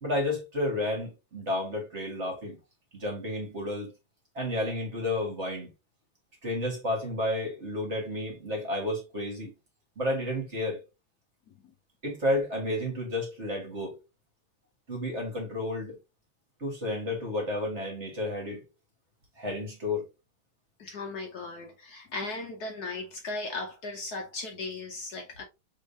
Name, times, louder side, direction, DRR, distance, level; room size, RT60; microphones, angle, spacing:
voice 1, 0.0-2.6 2.9-3.9 4.3-5.7 6.4-9.5 10.0-10.8 12.0-14.0 14.9-16.0 16.6-18.7 19.4-20.1, left 1 dB, 35° right, 1.8 m, -31 dB
voice 2, 20.8-25.4, left 3 dB, 60° left, 1.2 m, -37 dB
5.1 x 3.6 x 2.6 m
omnidirectional pair, 2.1 m